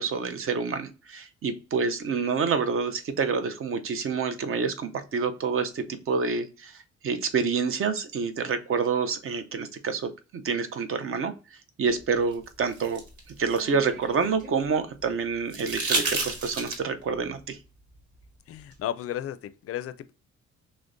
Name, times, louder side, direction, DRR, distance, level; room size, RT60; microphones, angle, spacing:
voice 1, 0.0-6.8 7.0-11.3 11.8-13.0 13.4-17.6, right 5 dB, 45° right, 0.6 m, -28 dB
sound 1, 12.3-14.6 15.5-17.0 18.7-18.8, right 3 dB, 80° right, 1.2 m, -31 dB
voice 2, 18.5-20.1, left 11 dB, 50° left, 0.4 m, -34 dB
6.1 x 2.1 x 2.5 m
cardioid pair, 90°, 30 cm